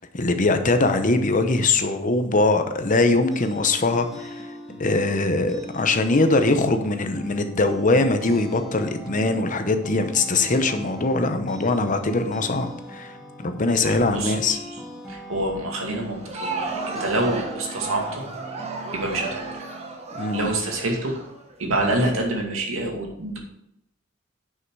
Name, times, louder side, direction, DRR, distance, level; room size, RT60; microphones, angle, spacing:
voice 1, 0.1-4.5 4.8-13.1 13.4-14.6 20.1-20.5, left 2 dB, 40° left, 8 dB, 0.8 m, -22 dB
sound 1, 3.0-20.0, right 1 dB, ahead, 2.2 m, -40 dB
voice 2, 13.8-14.6 15.1-18.2 18.9-19.6 20.3-21.1 21.6-23.4, right 1 dB, 80° right, 1 dB, 2.3 m, -27 dB
Crowd, 16.1-22.0, right 3 dB, 30° right, 1.3 m, -33 dB
9.7 x 5.6 x 4.7 m, 0.78 s
head